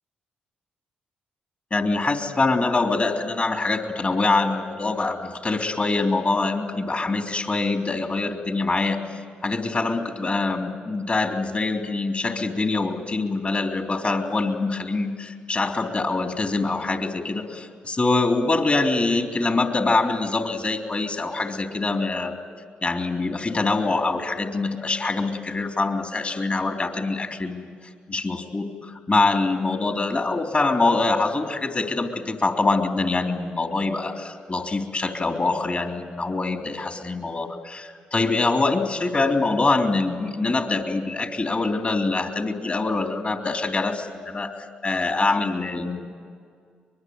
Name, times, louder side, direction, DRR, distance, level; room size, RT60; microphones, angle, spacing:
voice 1, 1.7-22.4 22.8-27.7 28.1-44.5 44.8-46.1, left 3 dB, 35° left, 4 dB, 3.4 m, -24 dB
23.5 x 22.0 x 9.5 m, 2.1 s
hypercardioid pair, 45°, 4 cm